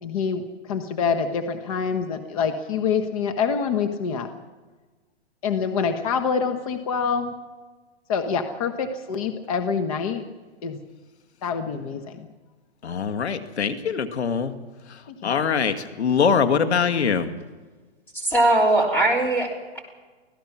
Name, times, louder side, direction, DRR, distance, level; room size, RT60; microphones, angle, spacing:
voice 1, 0.0-4.3 5.4-7.4 8.1-10.2 10.6-10.8 11.4-12.3 15.2-15.3, left 6 dB, 35° left, 7 dB, 1.2 m, -26 dB
voice 2, 12.8-14.5 15.2-17.3, left 6 dB, 90° left, 9 dB, 2.2 m, -23 dB
voice 3, 18.1-19.8, right 2 dB, 5° left, -2 dB, 3.6 m, -20 dB
25.5 x 17.0 x 6.0 m, 1.3 s
hypercardioid pair, 165°, 33 cm